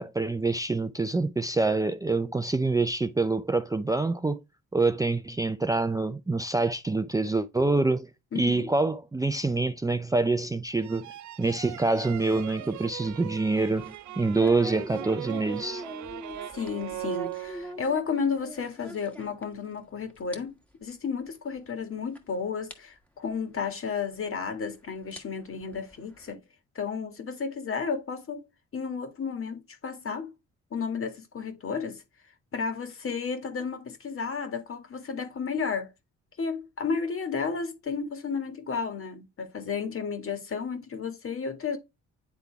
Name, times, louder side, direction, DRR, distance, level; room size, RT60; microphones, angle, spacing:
voice 1, 0.0-4.4 4.7-8.1 8.3-11.1 11.4-15.8, right 3 dB, 10° right, 0.5 m, -26 dB
voice 2, 8.3-8.7 16.5-20.5 20.8-26.4 26.8-28.5 28.7-30.3 30.7-32.0 32.5-35.9 36.4-41.8, left 5 dB, 45° left, 2.1 m, -32 dB
sound 1, 10.8-18.0, right 14 dB, 70° right, 0.6 m, -40 dB
sound 2, 11.9-19.8 20.1-20.4 20.7-20.8 21.6-21.7 22.1-22.2 22.7-22.8 24.1-24.2 24.9-26.3, equal, 5° left, 1.8 m, -44 dB
9.6 x 3.8 x 3.4 m
cardioid pair, 90°, 30 cm